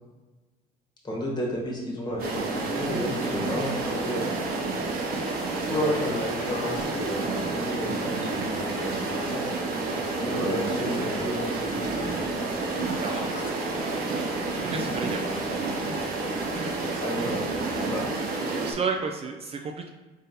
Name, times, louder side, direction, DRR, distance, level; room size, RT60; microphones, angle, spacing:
voice 1, 1.0-4.3 5.6-9.5 10.2-12.1 16.7-18.2, equal, 25° left, -2 dB, 1.1 m, -32 dB
sound 1, 2.0-18.0, left 3 dB, 55° left, 0.8 m, -42 dB
sound 2, 2.2-18.7, right 3 dB, 60° right, 0.7 m, -29 dB
sound 3, 12.0-14.9, left 2 dB, 80° left, 1.2 m, -46 dB
voice 2, 13.0-13.3 14.3-15.2 16.9-17.0 18.6-19.9, right 5 dB, 35° right, 2 dB, 0.3 m, -32 dB
4.0 x 3.6 x 2.7 m, 1.3 s
cardioid pair, 110°, 17 cm